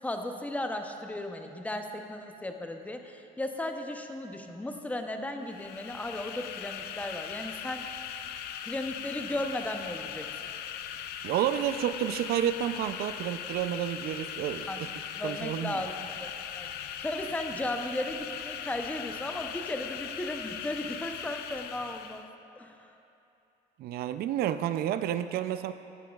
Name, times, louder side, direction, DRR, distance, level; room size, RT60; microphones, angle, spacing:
voice 1, 0.0-7.9 8.6-10.3 14.7-16.3 16.5-22.3 22.6-22.9, left 1 dB, 10° left, 5 dB, 0.6 m, -36 dB
sound 1, 5.4-22.3, left 9 dB, 70° left, 0.4 m, -39 dB
voice 2, 11.2-14.9 15.2-15.8 23.8-25.7, right 11 dB, 65° right, 11 dB, 0.4 m, -30 dB
14.5 x 9.0 x 2.4 m, 2.8 s
cardioid pair, 110°, 17 cm